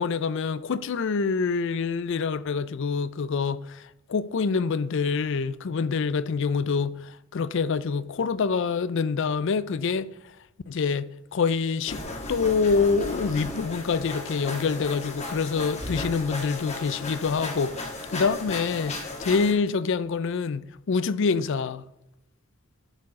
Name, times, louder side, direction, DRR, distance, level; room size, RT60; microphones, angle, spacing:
voice 1, 0.0-10.1 10.7-12.0 12.3-21.8, left 5 dB, 60° left, 0.4 m, -26 dB
sound 1, 11.9-19.5, left 2 dB, 35° left, 1.5 m, -35 dB
11.5 x 4.7 x 4.8 m
head